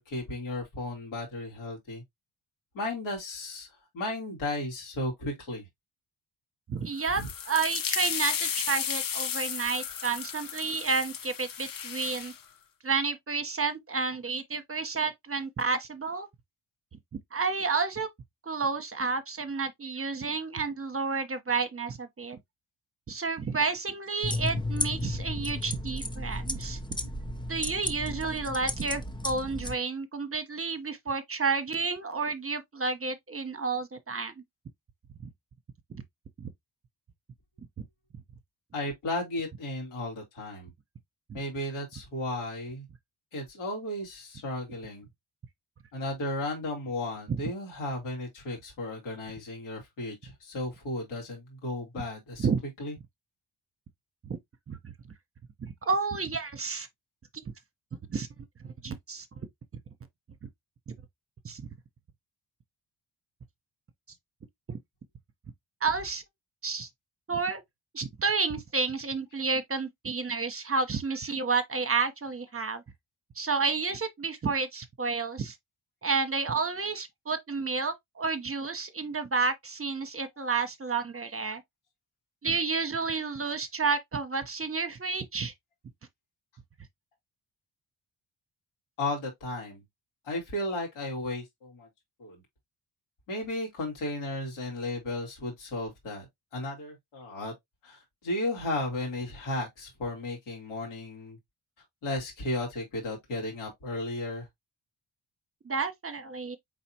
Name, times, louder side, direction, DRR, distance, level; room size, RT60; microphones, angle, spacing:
voice 1, 0.0-2.0 2.7-3.7 3.9-5.7 7.1-7.3 38.7-40.7 41.3-42.9 43.3-45.1 45.9-52.5 52.8-52.9 89.0-89.8 90.2-91.9 92.2-92.4 93.3-96.3 96.5-97.5 97.8-101.4 102.0-104.5, left 1 dB, 80° left, 2.6 m, -34 dB
voice 2, 6.7-7.2 7.5-12.3 12.8-16.3 17.3-18.1 18.4-22.4 23.1-26.8 27.5-34.3 35.2-35.3 35.9-36.0 36.4-36.5 41.3-41.4 47.3-47.4 52.4-52.6 54.2-54.4 54.7-54.8 55.6-56.9 58.1-58.3 58.6-59.3 60.4-60.5 61.4-61.6 64.7-64.8 65.8-66.2 66.6-66.9 67.3-67.6 67.9-72.8 73.3-75.6 76.0-81.6 82.4-85.5 105.6-106.6, right 4 dB, 30° right, 0.9 m, -30 dB
sound 1, 7.0-12.4, left 8 dB, 45° left, 0.8 m, -34 dB
sound 2, 24.2-29.8, left 1 dB, 10° left, 0.8 m, -33 dB
4.2 x 3.8 x 2.8 m
hypercardioid pair, 45°, 48 cm